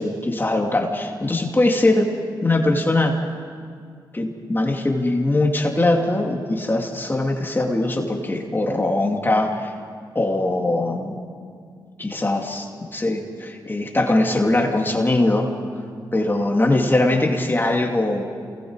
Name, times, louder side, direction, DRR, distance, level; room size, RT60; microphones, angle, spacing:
voice 1, 0.0-2.1 2.4-3.2 4.1-9.7 10.1-11.2 12.0-15.5 16.1-18.2, left 2 dB, 25° left, 1 dB, 2.8 m, -21 dB
28.0 x 20.0 x 4.9 m, 2.2 s
cardioid pair, 60°, 8 cm